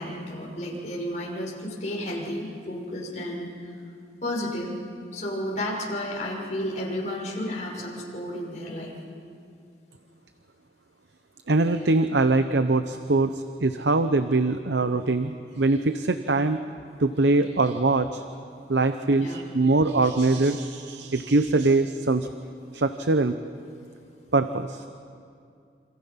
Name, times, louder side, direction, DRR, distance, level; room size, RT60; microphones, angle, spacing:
voice 1, 0.0-3.6 4.2-4.7 5.1-8.9 19.2-19.4, left 1 dB, 40° left, -3 dB, 6.0 m, -32 dB
voice 2, 11.5-16.6 17.0-18.2 18.7-22.3 22.7-23.3 24.3-24.8, right 3 dB, 85° right, 9 dB, 0.8 m, -23 dB
28.5 x 27.0 x 5.8 m, 2.4 s
head